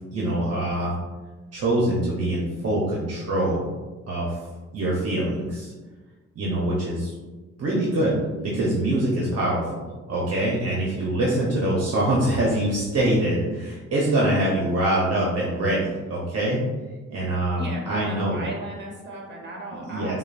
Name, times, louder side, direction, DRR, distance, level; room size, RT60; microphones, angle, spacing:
voice 1, 0.1-1.0 1.5-3.6 4.1-4.4 4.7-5.7 6.3-7.1 7.6-8.1 8.4-9.8 10.1-16.6 17.1-18.4 19.8-20.1, right 1 dB, 55° right, -5 dB, 1.0 m, -24 dB
voice 2, 17.6-20.2, right 1 dB, 35° right, -2 dB, 1.4 m, -36 dB
6.1 x 2.4 x 2.6 m, 1.3 s
cardioid pair, 90°, 30 cm